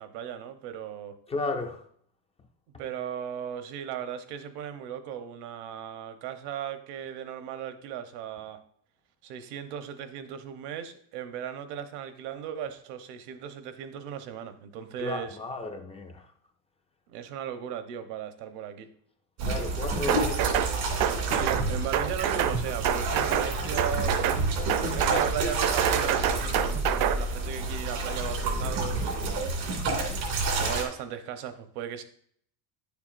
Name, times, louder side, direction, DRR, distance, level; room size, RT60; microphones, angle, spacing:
voice 1, 0.0-1.2 2.8-8.6 9.2-15.4 17.1-18.9 20.0-20.5 21.3-24.2 24.9-29.5 30.6-32.0, right 9 dB, 70° right, 1.0 m, -37 dB
voice 2, 1.3-1.9 15.0-16.3 19.4-20.7, left 3 dB, 15° left, 0.3 m, -34 dB
sound 1, 19.4-30.8, right 3 dB, 90° right, 2.6 m, -29 dB
sound 2, 20.1-20.7 21.0-21.6 21.9-22.6 22.8-23.5 23.8-24.4 24.7-25.3 25.6-27.2, right 9 dB, 50° right, 0.6 m, -26 dB
10.0 x 7.0 x 2.5 m
cardioid pair, 155°, 42 cm